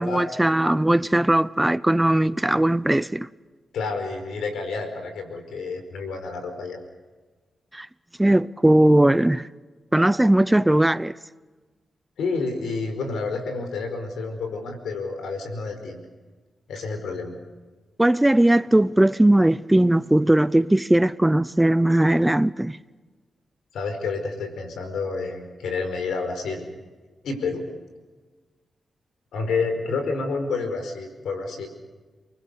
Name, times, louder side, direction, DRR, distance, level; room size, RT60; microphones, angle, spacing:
voice 1, 0.0-3.3 7.7-7.9 8.2-9.5 9.9-11.1 18.0-22.8, right 1 dB, 10° right, 0.7 m, -19 dB
voice 2, 3.7-6.8 12.2-16.0 16.7-17.4 23.7-26.7 27.2-27.7 29.3-31.7, left 4 dB, 90° left, 4.8 m, -29 dB
29.0 x 20.5 x 6.7 m
cardioid pair, 60°, 0 cm